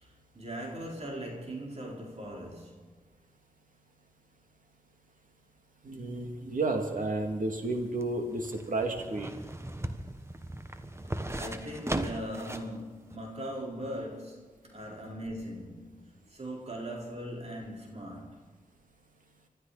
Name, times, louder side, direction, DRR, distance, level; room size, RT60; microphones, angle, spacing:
voice 1, 0.0-2.9 11.3-18.6, equal, 45° right, 4.6 m, -40 dB
voice 2, 5.8-9.3, right 2 dB, 65° right, 2.7 m, -32 dB
sound 1, 7.6-12.7 13.1-13.2, right 1 dB, 20° right, 1.3 m, -37 dB
25.0 x 12.5 x 4.3 m
cardioid pair, 55°, 15 cm